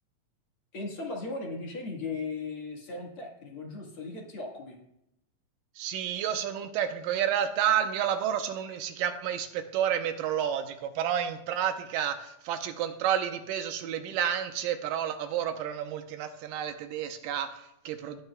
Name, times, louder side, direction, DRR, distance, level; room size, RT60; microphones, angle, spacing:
voice 1, 0.7-4.8, left 3 dB, 50° left, -1 dB, 2.0 m, -37 dB
voice 2, 5.8-18.2, right 9 dB, 85° right, 8 dB, 2.4 m, -30 dB
18.5 x 8.9 x 2.3 m, 0.81 s
omnidirectional pair, 3.9 m